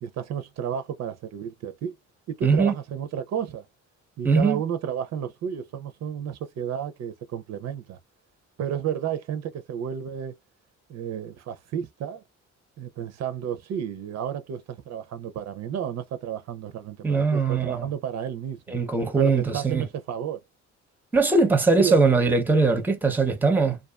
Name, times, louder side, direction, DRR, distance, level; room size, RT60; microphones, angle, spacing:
voice 1, 0.0-1.9 2.3-3.7 4.2-8.0 8.6-10.4 10.9-12.2 12.8-18.8 19.2-20.4 21.8-22.0, right 8 dB, 60° right, 0.5 m, -32 dB
voice 2, 2.4-2.7 4.2-4.6 17.0-17.8 18.7-19.9 21.1-23.8, right 4 dB, 5° right, 0.6 m, -21 dB
2.4 x 2.3 x 2.3 m
cardioid pair, 90°, 30 cm